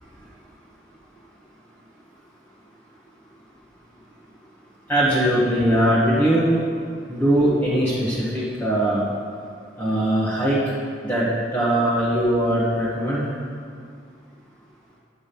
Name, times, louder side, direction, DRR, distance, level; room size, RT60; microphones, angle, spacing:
voice 1, 4.9-6.5 7.1-9.0 9.8-10.6 11.0-13.3, right 1 dB, 10° left, -9 dB, 1.3 m, -20 dB
9.2 x 6.1 x 6.9 m, 2.3 s
head